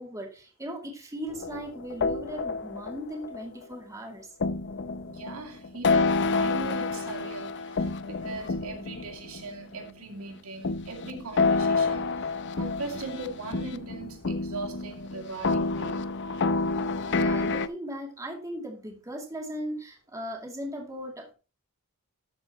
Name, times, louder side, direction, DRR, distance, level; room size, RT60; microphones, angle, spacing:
voice 1, 0.0-4.3 17.1-21.3, equal, 15° right, 2.5 m, -38 dB
sound 1, 1.3-3.7 4.4-9.8 10.6-17.7, left 4 dB, 55° left, 0.6 m, -29 dB
voice 2, 5.0-16.0, right 3 dB, 70° right, 2.3 m, -39 dB
13.0 x 8.8 x 2.9 m
head